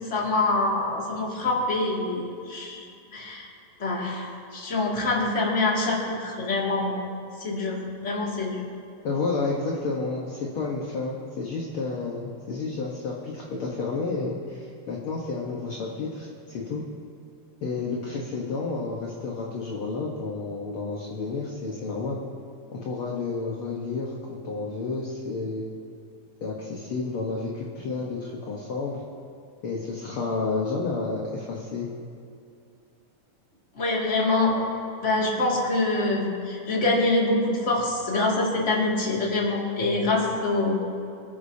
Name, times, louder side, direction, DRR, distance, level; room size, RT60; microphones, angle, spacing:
voice 1, 0.1-2.8 3.1-3.5 3.8-7.0 7.4-8.7 33.7-34.6 35.0-40.8, left 2 dB, 25° left, -4 dB, 2.3 m, -25 dB
voice 2, 9.0-16.8 17.6-22.2 22.7-25.7 26.4-29.0 29.6-31.9, left 3 dB, 55° left, -3 dB, 1.7 m, -31 dB
25.5 x 9.9 x 2.8 m, 2.5 s
omnidirectional pair, 3.5 m